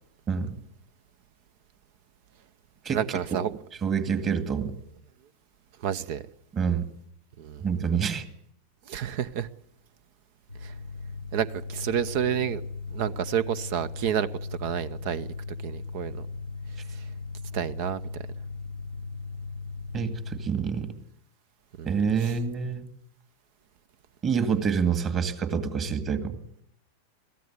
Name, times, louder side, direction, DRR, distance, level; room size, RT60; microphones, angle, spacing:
voice 1, 2.9-3.5 5.8-6.2 7.4-7.6 8.9-9.5 10.6-10.7 11.3-12.6 12.9-14.3 14.6-15.3 15.6-16.3 16.9-17.0 17.5-18.0 21.8-21.9 22.2-22.3, right 9 dB, 50° right, 0.8 m, -29 dB
voice 2, 3.8-4.7 6.5-6.9 7.6-8.2 19.9-20.9 21.8-22.9 24.2-26.4, right 6 dB, 25° right, 2.2 m, -27 dB
sound 1, 10.5-20.5, left 4 dB, 85° left, 0.8 m, -38 dB
23.0 x 15.5 x 8.3 m
figure-of-eight pair, 90°, 0 cm